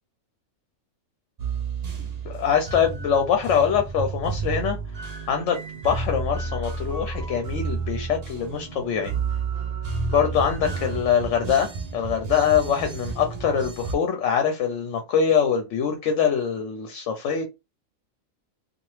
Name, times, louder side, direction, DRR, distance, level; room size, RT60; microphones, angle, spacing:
sound 1, 1.4-13.9, right 4 dB, 45° right, 0.5 m, -31 dB
voice 1, 2.0-4.8 5.3-5.6 5.8-9.1 10.1-17.4, left 7 dB, 65° left, 0.9 m, -23 dB
2.9 x 2.4 x 3.1 m
omnidirectional pair, 1.4 m